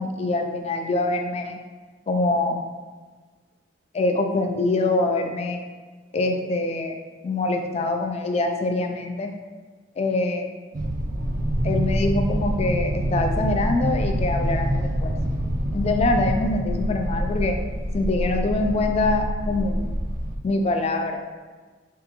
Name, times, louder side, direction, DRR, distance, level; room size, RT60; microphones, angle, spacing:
voice 1, 0.0-1.6 2.1-2.6 3.9-5.6 6.1-7.0 7.2-9.3 10.0-10.5 11.6-15.1 15.7-17.6 17.9-19.9 20.4-21.2, left 2 dB, 35° left, 4 dB, 0.3 m, -24 dB
sound 1, 10.7-20.4, equal, 45° right, 0.4 m, -26 dB
3.5 x 2.5 x 2.9 m, 1.4 s
head